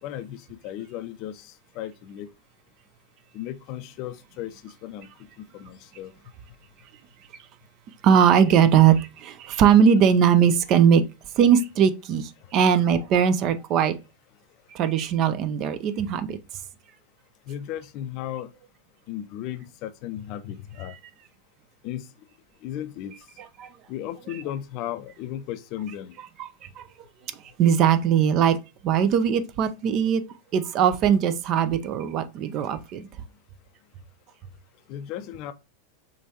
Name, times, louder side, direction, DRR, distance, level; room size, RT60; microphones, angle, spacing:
voice 1, 0.0-2.3 3.3-5.1 5.4-6.1 17.5-18.5 19.1-20.9 21.8-22.1 22.6-23.1 23.9-26.2 34.9-35.5, left 11 dB, 40° left, 0.5 m, -35 dB
voice 2, 8.0-11.0 11.4-13.9 14.7-16.4 20.9-21.0 23.6-23.7 26.4-26.5 26.8-26.9 27.6-28.6 28.8-30.2 30.5-33.1, right 8 dB, 35° right, 0.5 m, -20 dB
5.1 x 3.5 x 2.8 m
figure-of-eight pair, 90°, 0 cm